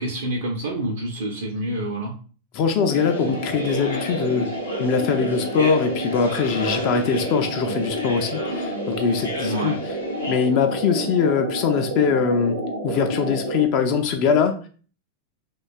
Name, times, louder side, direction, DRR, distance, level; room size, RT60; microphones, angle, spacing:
voice 1, 0.0-2.1 9.4-9.8, right 1 dB, 60° right, 0 dB, 0.4 m, -27 dB
voice 2, 2.5-4.5 4.8-10.0 10.3-12.6 12.8-14.6, left 6 dB, 45° left, 5 dB, 0.3 m, -22 dB
sound 1, 2.8-13.6, right 1 dB, 85° right, 0.8 m, -29 dB
sound 2, 2.9-10.5, left 2 dB, 75° left, 0.7 m, -35 dB
2.6 x 2.2 x 2.4 m, 0.39 s
figure-of-eight pair, 90°, 0 cm